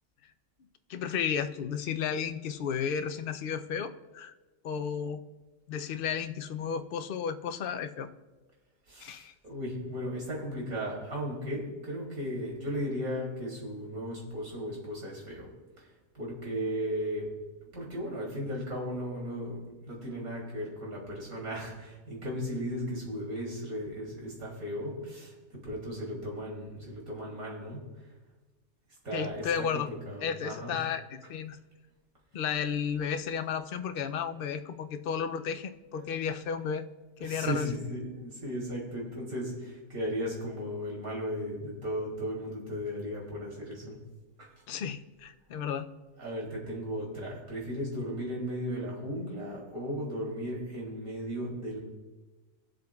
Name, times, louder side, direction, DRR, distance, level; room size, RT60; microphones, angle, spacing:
voice 1, 0.9-4.3 4.6-5.2 5.7-8.1 9.0-9.3 29.1-29.9 30.2-31.6 32.3-36.9 37.2-37.7 44.7-45.9, left 7 dB, 65° left, 8 dB, 0.5 m, -33 dB
voice 2, 8.9-15.5 15.8-15.9 16.1-17.3 17.7-19.6 19.9-27.9 29.0-30.8 36.0-36.1 37.2-44.0 44.4-44.5 46.2-51.8, equal, 75° right, -2 dB, 3.5 m, -36 dB
22.5 x 7.8 x 2.3 m, 1.2 s
omnidirectional pair, 1.5 m